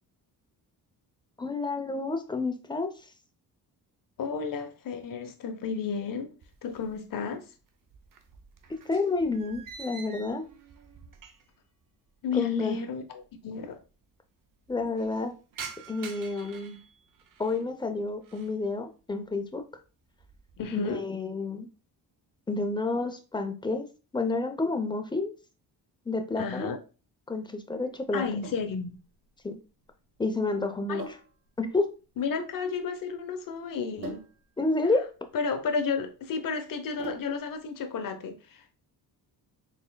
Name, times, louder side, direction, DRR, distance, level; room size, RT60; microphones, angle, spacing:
voice 1, 1.4-2.9 8.7-10.5 12.3-12.8 14.7-15.3 15.9-16.8 17.4-19.6 20.7-21.7 22.5-23.9 24.1-25.3 26.1-26.7 27.3-28.3 29.4-29.6 30.2-31.0 31.6-31.9 34.6-35.1, left 3 dB, 10° left, 0.5 m, -29 dB
voice 2, 4.2-6.3 6.6-7.5 12.2-13.8 20.6-21.0 26.4-26.8 28.1-28.9 30.9-31.0 32.2-34.2 35.3-38.8, left 5 dB, 55° left, 0.8 m, -32 dB
sound 1, 6.4-7.3 7.6-11.7 11.9-12.0 12.9-13.0 13.2-13.3 13.6-14.0 14.4-17.7 18.1-18.6 19.0-19.4 19.8-20.7, right 6 dB, 55° right, 0.8 m, -47 dB
Sink (filling or washing), 28.4-37.6, right 3 dB, 85° right, 1.3 m, -47 dB
4.2 x 3.5 x 2.2 m
cardioid pair, 90°, 40 cm